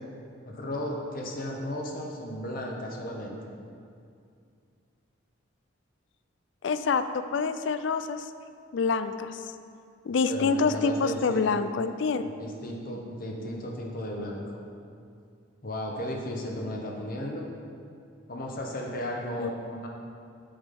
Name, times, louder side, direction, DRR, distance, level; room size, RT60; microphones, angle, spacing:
voice 1, 0.5-3.4 10.3-11.5 12.4-14.5 15.6-17.5 18.3-19.9, left 1 dB, 45° left, 0 dB, 0.9 m, -35 dB
voice 2, 6.6-8.3 8.7-9.4 10.0-12.2 19.4-19.5, left 4 dB, 65° left, 11 dB, 0.4 m, -26 dB
7.0 x 5.5 x 5.3 m, 2.4 s
head